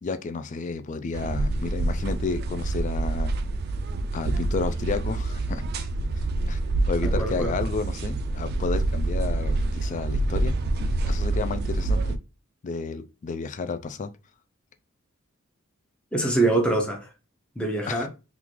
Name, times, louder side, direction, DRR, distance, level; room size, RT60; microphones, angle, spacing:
voice 1, 0.0-3.3 4.1-5.9 6.5-6.6 6.9-10.5 11.0-12.2 12.6-14.1 17.9-18.1, left 4 dB, 35° left, 0.3 m, -31 dB
sound 1, 1.1-12.2, right 2 dB, 50° right, 0.3 m, -27 dB
voice 2, 7.0-7.6 16.1-17.1 17.6-18.1, right 2 dB, 5° left, 0.7 m, -24 dB
3.6 x 2.4 x 3.0 m
head